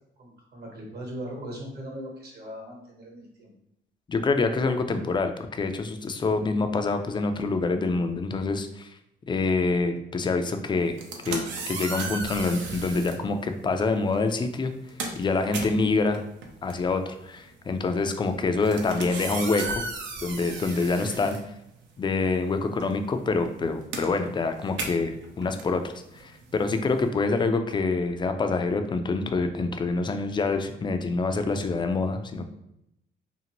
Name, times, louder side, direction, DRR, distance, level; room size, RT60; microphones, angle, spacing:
voice 1, 0.2-3.5, equal, 55° right, 0 dB, 1.1 m, -39 dB
voice 2, 4.1-8.9 9.3-11.0 11.3-14.7 15.2-16.2 16.6-19.8 20.2-21.4 22.0-32.4, left 3 dB, 25° left, 7 dB, 0.3 m, -26 dB
sound 1, 10.9-13.2 14.1-14.3 14.6-22.1 22.4-27.1, right 3 dB, 70° right, 0.6 m, -36 dB
2.6 x 2.4 x 2.9 m, 0.81 s
cardioid pair, 90°, 20 cm